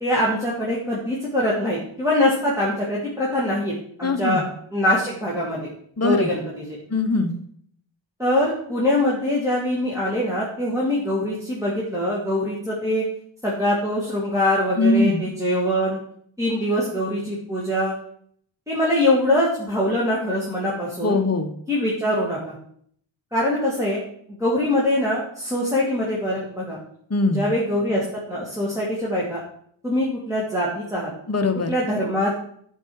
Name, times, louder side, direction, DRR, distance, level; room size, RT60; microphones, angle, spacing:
voice 1, 0.0-3.7 4.0-4.4 4.7-5.7 6.0-6.8 8.2-13.0 13.4-16.0 16.4-17.9 18.7-21.2 21.7-22.5 23.3-24.0 24.4-26.8 27.3-29.4 29.8-31.1 31.7-32.4, left 1 dB, 5° right, -6 dB, 2.0 m, -23 dB
voice 2, 4.0-4.4 6.0-6.3 6.9-7.3 14.8-15.2 21.0-21.5 27.1-27.4 31.3-31.7, left 3 dB, 30° left, 5 dB, 1.0 m, -21 dB
11.0 x 4.6 x 4.7 m, 0.65 s
wide cardioid pair, 100°, 49 cm